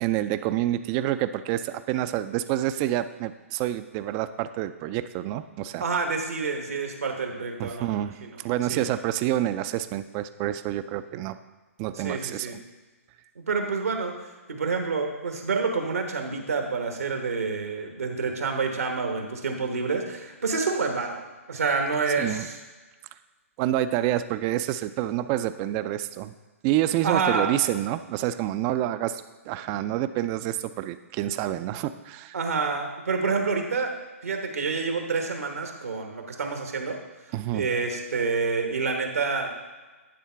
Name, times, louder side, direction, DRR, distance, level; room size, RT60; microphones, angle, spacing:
voice 1, 0.0-5.8 7.6-11.4 11.8-12.6 22.2-22.5 23.6-26.3 26.6-32.4 37.3-37.7, right 13 dB, 25° right, 12 dB, 0.3 m, -28 dB
voice 2, 5.8-8.3 8.7-8.8 12.0-12.5 13.4-14.1 14.5-21.2 21.5-22.5 27.0-27.5 32.3-33.9 34.2-37.0 37.5-39.5, right 4 dB, 80° right, 3 dB, 1.2 m, -28 dB
10.0 x 3.6 x 5.6 m, 1.3 s
figure-of-eight pair, 130°, 8 cm